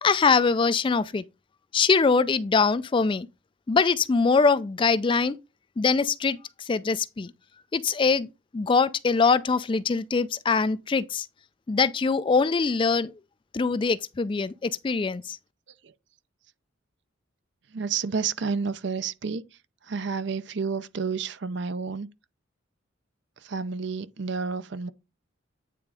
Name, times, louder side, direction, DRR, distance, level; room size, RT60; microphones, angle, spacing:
voice 1, 0.0-1.2 1.7-3.3 3.7-5.4 5.8-7.3 7.7-11.3 11.7-13.1 13.5-15.4, left 4 dB, 25° left, 0.3 m, -23 dB
voice 2, 17.7-19.4 19.9-22.1 23.5-24.9, right 5 dB, 60° right, 0.6 m, -30 dB
9.2 x 3.6 x 4.8 m
head